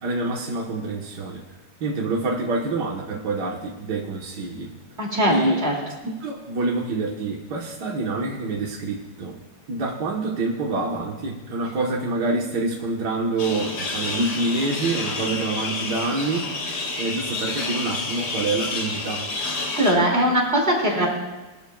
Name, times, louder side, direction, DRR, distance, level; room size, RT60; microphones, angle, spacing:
voice 1, 0.0-1.4 1.8-4.7 5.3-5.6 6.0-9.4 9.7-16.7 17.0-19.3, right 2 dB, 70° right, -1 dB, 1.9 m, -26 dB
voice 2, 5.0-5.7 19.8-21.1, equal, 35° right, -1 dB, 2.9 m, -20 dB
sound 1, 13.4-19.9, left 3 dB, 70° left, 2.1 m, -29 dB
21.5 x 12.0 x 2.4 m, 1.1 s
omnidirectional pair, 1.9 m